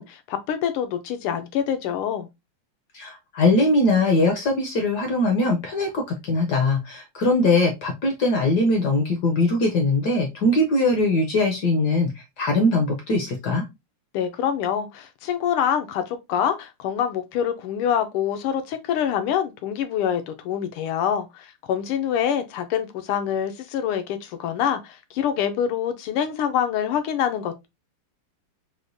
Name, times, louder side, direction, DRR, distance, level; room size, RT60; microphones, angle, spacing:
voice 1, 0.0-2.3 14.1-27.7, left 9 dB, 85° left, 1.5 m, -25 dB
voice 2, 2.9-12.1 12.4-13.6, left 2 dB, 65° left, 1.0 m, -21 dB
4.8 x 2.1 x 2.5 m
omnidirectional pair, 2.4 m